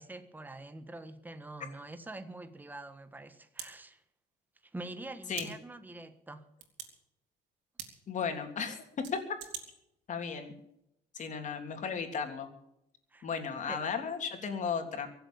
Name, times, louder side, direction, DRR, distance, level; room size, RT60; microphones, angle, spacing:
voice 1, 0.0-4.0 4.6-6.5 13.1-13.3 13.7-13.8, right 2 dB, 10° right, 1.5 m, -45 dB
sound 1, 1.9-2.0 3.6-3.7 5.3-5.5 6.6-6.9 7.8-7.9 9.0-9.6, right 9 dB, 90° right, 3.4 m, -41 dB
voice 2, 8.1-8.8 9.1-9.2 10.1-10.5 11.1-12.5 13.2-15.1, left 6 dB, 45° left, 3.3 m, -35 dB
23.5 x 8.0 x 7.1 m
cardioid pair, 110°, 17 cm